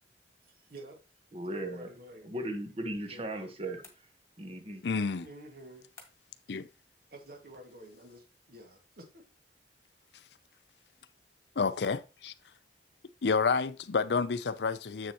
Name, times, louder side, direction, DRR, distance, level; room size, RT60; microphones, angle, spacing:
voice 1, 0.4-1.0 1.5-2.4 3.1-3.5 5.2-5.9 7.1-9.3, right 1 dB, 55° right, 2.0 m, -50 dB
voice 2, 1.3-1.9 2.2-3.8 4.4-4.8, right 1 dB, 35° right, 1.3 m, -37 dB
sound 1, 3.8-4.6 6.0-6.5, left 4 dB, 15° left, 1.7 m, -56 dB
voice 3, 4.8-5.3 6.5-6.7 11.6-12.3 13.2-15.1, left 5 dB, 70° left, 0.5 m, -29 dB
7.5 x 6.8 x 3.0 m
head